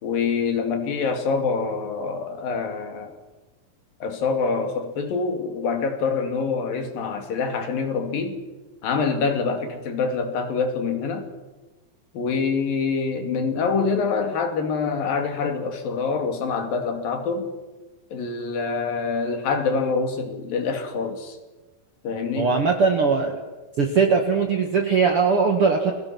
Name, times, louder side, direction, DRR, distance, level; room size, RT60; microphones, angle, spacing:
voice 1, 0.0-3.1 4.0-8.4 8.8-11.3 12.1-17.5 18.1-21.4 22.0-22.5, left 5 dB, 75° left, 5 dB, 4.3 m, -25 dB
voice 2, 22.4-23.4 23.8-25.9, right 5 dB, 50° right, 3 dB, 2.2 m, -20 dB
29.5 x 22.0 x 6.1 m, 1.2 s
omnidirectional pair, 4.1 m